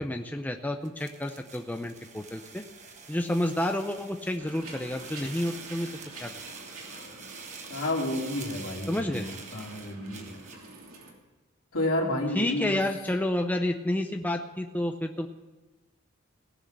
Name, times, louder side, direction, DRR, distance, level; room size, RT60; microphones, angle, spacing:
voice 1, 0.0-2.6 3.1-5.9 6.2-6.3 8.9-9.3 12.3-15.3, left 1 dB, 10° left, 5 dB, 0.6 m, -30 dB
sound 1, 0.8-10.7, right 5 dB, 35° right, 1.3 m, -46 dB
sound 2, 4.4-11.1, right 2 dB, 75° right, 3.0 m, -47 dB
voice 2, 7.7-10.4 11.7-12.8, left 1 dB, 70° left, -1 dB, 2.9 m, -30 dB
18.0 x 6.3 x 7.7 m, 1.2 s
head